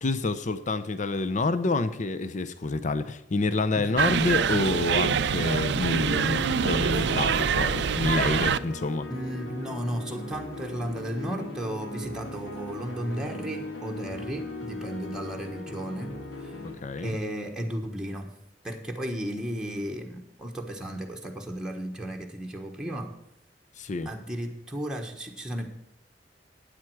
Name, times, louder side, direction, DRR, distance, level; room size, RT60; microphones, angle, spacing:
voice 1, 0.0-9.1 16.6-17.2 23.8-24.1, left 3 dB, 45° left, 12 dB, 0.6 m, -28 dB
sound 1, 4.0-8.6, right 7 dB, 70° right, 0.4 m, -25 dB
sound 2, 4.7-16.7, left 1 dB, 70° left, 2.0 m, -39 dB
voice 2, 9.1-18.4 18.6-23.2 24.0-25.7, right 1 dB, 5° right, 1 dB, 1.3 m, -34 dB
12.0 x 9.0 x 4.7 m, 0.82 s
head